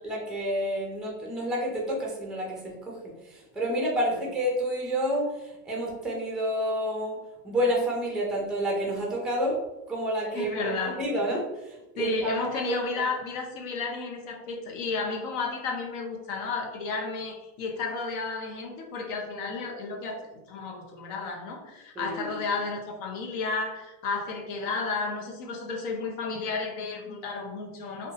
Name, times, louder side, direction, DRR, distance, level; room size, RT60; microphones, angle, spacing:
voice 1, 0.0-7.2 7.4-9.6 9.9-13.0 22.0-22.4, equal, ahead, -1 dB, 0.4 m, -29 dB
voice 2, 10.3-11.0 12.0-28.1, left 4 dB, 60° left, 2 dB, 0.7 m, -32 dB
2.5 x 2.2 x 2.8 m, 0.99 s
supercardioid pair, 125°, 44 cm